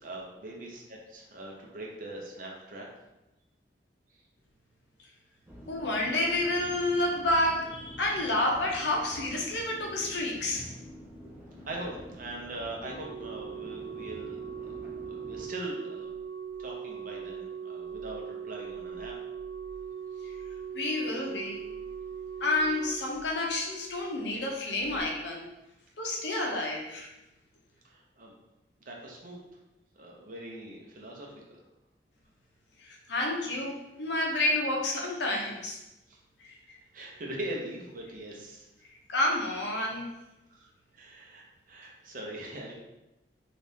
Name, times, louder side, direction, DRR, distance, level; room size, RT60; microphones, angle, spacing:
voice 1, 0.0-2.9 11.7-14.8 15.1-16.1 16.6-19.1 20.2-20.3 27.8-28.3 28.9-29.4 30.0-31.6 36.1-36.2 36.9-38.7 40.5-42.7, right 1 dB, 50° right, -1 dB, 0.6 m, -41 dB
sound 1, 5.5-15.5, equal, 10° right, 0.4 m, -47 dB
voice 2, 5.7-10.6 20.7-21.6 22.4-25.4 26.0-27.1 32.8-35.8 36.4-36.8 39.1-40.1, left 1 dB, 70° left, 0 dB, 0.7 m, -29 dB
Organ, 12.8-23.7 24.8-25.0, right 7 dB, 15° left, 1.0 m, -40 dB
3.4 x 2.4 x 2.7 m, 0.95 s
head